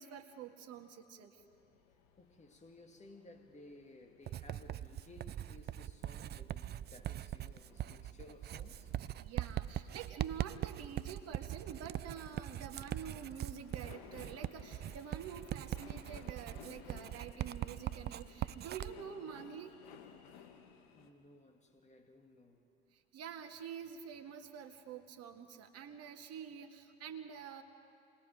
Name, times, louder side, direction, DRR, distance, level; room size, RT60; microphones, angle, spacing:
voice 1, 0.0-1.3 9.2-19.8 23.1-27.6, right 8 dB, 50° right, 5 dB, 2.0 m, -47 dB
sound 1, 1.4-21.1, left 7 dB, 70° left, 1.8 m, -60 dB
voice 2, 1.9-9.0 20.9-22.7, left 2 dB, 20° left, 4 dB, 2.4 m, -58 dB
Writing, 4.3-18.9, right 12 dB, 35° right, 0.5 m, -41 dB
28.0 x 21.0 x 5.0 m, 2.9 s
hypercardioid pair, 70°, 31 cm